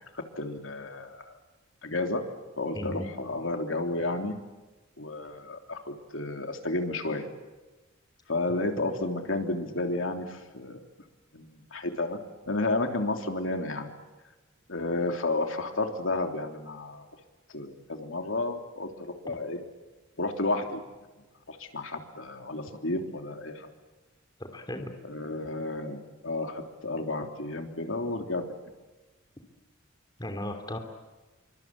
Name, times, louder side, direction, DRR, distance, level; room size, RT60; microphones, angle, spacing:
voice 1, 0.3-1.3 1.8-2.2 2.6-4.3 5.0-7.3 8.3-10.8 11.3-12.2 12.5-13.9 14.7-17.0 17.5-19.6 20.2-20.8 21.5-23.7 25.0-28.4, left 2 dB, 70° left, 4 dB, 3.4 m, -32 dB
voice 2, 2.7-3.1 8.8-8.9 24.4-24.9 30.2-30.8, left 1 dB, 20° left, 5 dB, 3.0 m, -35 dB
26.5 x 25.0 x 8.8 m, 1.2 s
head